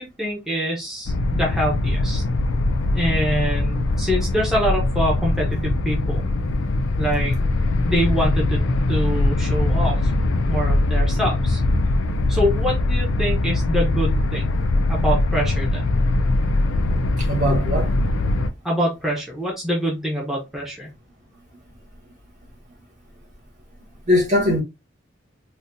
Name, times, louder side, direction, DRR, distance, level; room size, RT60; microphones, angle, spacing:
voice 1, 0.0-2.2 2.9-6.2 7.0-7.4 7.8-10.1 10.5-11.6 12.3-14.5 14.9-15.8 18.6-20.9, equal, ahead, 0.9 m, -25 dB
sound 1, 1.1-18.5, left 2 dB, 85° left, 0.5 m, -21 dB
voice 2, 17.2-17.9 24.1-24.6, left 1 dB, 40° right, 1.7 m, -20 dB
4.1 x 2.4 x 2.6 m
head